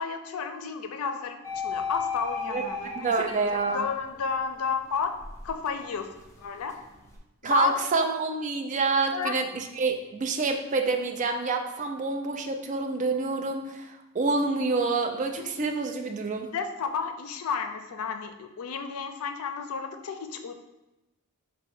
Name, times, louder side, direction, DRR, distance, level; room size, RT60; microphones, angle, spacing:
voice 1, 0.0-1.4 1.6-5.1 5.4-6.1 6.4-6.7 7.4-7.7 8.9-9.4 16.5-20.5, left 6 dB, 90° left, 7 dB, 0.4 m, -32 dB
sound 1, 1.4-4.3 4.8-7.2, left 4 dB, 15° left, 0.6 m, -36 dB
voice 2, 3.0-3.9 7.4-16.5, right 3 dB, 35° right, 4 dB, 0.4 m, -27 dB
4.6 x 2.1 x 4.2 m, 0.98 s
head